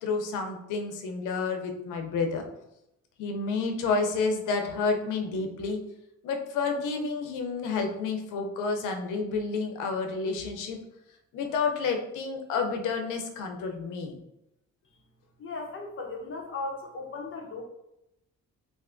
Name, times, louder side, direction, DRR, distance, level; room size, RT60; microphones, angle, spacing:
voice 1, 0.0-2.5 3.2-5.8 6.2-10.8 11.3-14.2, left 4 dB, 85° left, 4 dB, 0.6 m, -30 dB
voice 2, 15.4-17.6, left 3 dB, 45° left, 0 dB, 0.7 m, -37 dB
3.3 x 2.5 x 2.5 m, 0.86 s
cardioid pair, 90°, 30 cm